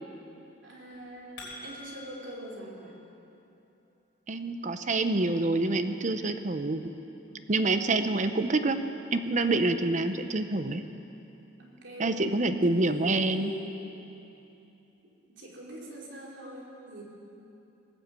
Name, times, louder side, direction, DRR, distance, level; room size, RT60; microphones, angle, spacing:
voice 1, 0.6-2.9 7.2-7.4 7.6-7.7 11.6-12.4 12.7-13.8 15.3-17.0, equal, 75° right, -3 dB, 3.0 m, -43 dB
sound 1, 0.9-2.4, left 2 dB, 75° left, 4.5 m, -45 dB
voice 2, 4.3-6.9 7.5-8.8 9.1-10.8 12.0-13.5, right 2 dB, 40° right, 9 dB, 0.7 m, -27 dB
20.0 x 7.6 x 8.1 m, 2.9 s
head